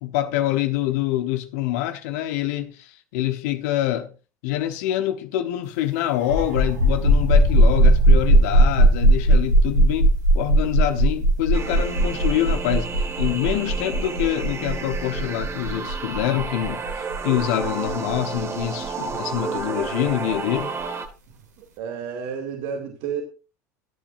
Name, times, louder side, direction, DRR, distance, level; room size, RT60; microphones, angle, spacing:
voice 1, 0.0-4.1 4.4-12.9 13.2-20.7, left 13 dB, 65° left, 1.2 m, -26 dB
sound 1, 6.2-19.6, right 1 dB, 85° right, 2.6 m, -18 dB
sound 2, 11.5-21.1, right 5 dB, 30° right, 1.7 m, -31 dB
voice 2, 21.6-23.2, right 7 dB, 60° right, 2.4 m, -31 dB
17.5 x 10.0 x 2.6 m
hypercardioid pair, 70°, 9 cm